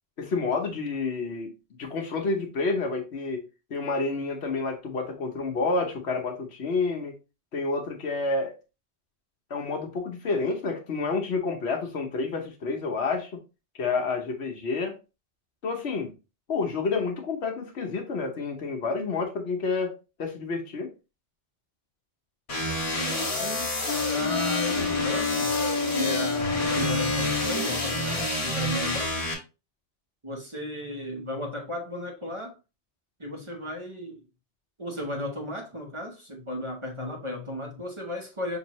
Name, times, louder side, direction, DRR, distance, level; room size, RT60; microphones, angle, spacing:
voice 1, 0.2-1.5 1.8-7.2 7.5-8.6 9.5-13.3 13.7-14.9 15.6-16.1 16.5-19.9 20.2-20.9, left 4 dB, 70° left, 1.2 m, -29 dB
sound 1, 22.5-29.3, left 1 dB, 50° left, 1.5 m, -29 dB
voice 2, 23.3-23.7 24.1-25.5 26.0-29.1 30.2-32.6 33.2-34.2 34.8-38.6, left 1 dB, 30° right, 1.0 m, -35 dB
Wind instrument woodwind instrument, 23.9-28.2, left 5 dB, 30° left, 0.3 m, -29 dB
6.0 x 2.7 x 3.0 m
omnidirectional pair, 1.1 m